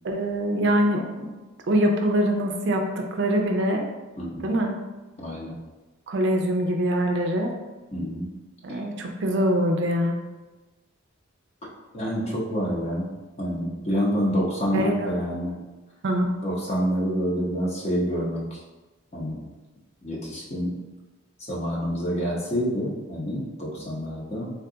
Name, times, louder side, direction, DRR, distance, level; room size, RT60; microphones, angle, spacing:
voice 1, 0.0-1.3 1.7-2.8 3.1-3.8 4.4-4.7 6.1-7.5 8.6-10.1 14.7-15.1 16.0-16.3, right 1 dB, 55° right, 3 dB, 0.4 m, -23 dB
voice 2, 4.2-4.5 5.2-5.6 7.9-8.3 8.7-8.8 11.9-13.1 13.4-15.6 16.4-18.6 19.1-19.4 20.0-20.7 21.5-24.5, equal, 30° left, -4 dB, 0.8 m, -27 dB
3.5 x 2.3 x 3.8 m, 1.2 s
head